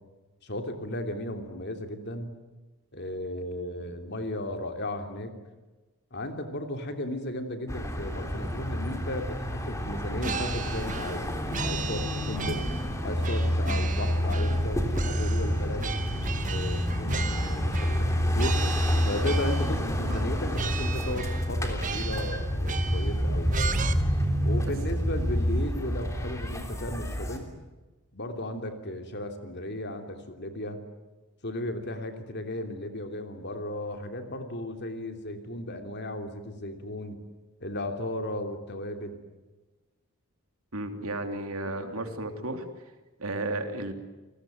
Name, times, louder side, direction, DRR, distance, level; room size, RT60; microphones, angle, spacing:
voice 1, 0.4-2.3 2.9-5.3 6.1-12.6 13.0-15.9 16.5-18.6 19.1-23.7 24.4-27.5 28.1-30.8 31.4-37.2 37.6-39.2, left 1 dB, 50° left, 6 dB, 3.1 m, -35 dB
sound 1, 7.7-27.4, equal, 15° left, 3.2 m, -28 dB
sound 2, 10.2-11.2 11.5-12.9 13.2-14.7 14.9-18.1 18.4-19.7 20.1-20.3 20.5-21.5 21.8-23.2 23.5-23.9, right 5 dB, 35° right, 1.3 m, -36 dB
voice 2, 40.7-42.7 43.2-43.9, right 2 dB, 70° right, 6 dB, 3.2 m, -33 dB
29.5 x 19.0 x 9.4 m, 1.2 s
head